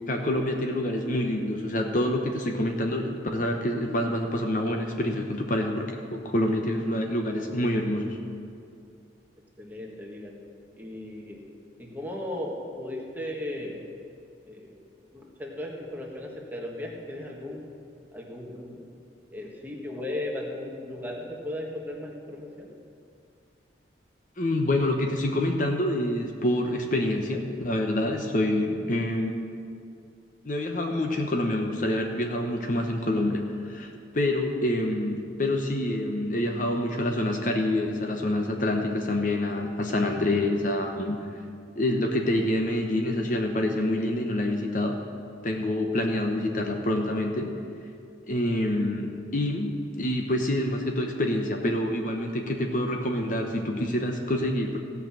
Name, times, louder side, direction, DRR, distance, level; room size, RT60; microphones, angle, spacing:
voice 1, 0.1-8.2 24.4-29.3 30.4-41.2 41.8-45.0 45.4-47.5 48.3-54.8, left 1 dB, 45° left, 3 dB, 0.9 m, -27 dB
voice 2, 9.6-10.3 10.8-11.4 11.8-13.8 14.4-14.8 15.1-17.6 18.1-18.9 19.3-22.7, left 1 dB, 10° right, -2 dB, 1.6 m, -36 dB
16.0 x 5.8 x 7.5 m, 2.4 s
head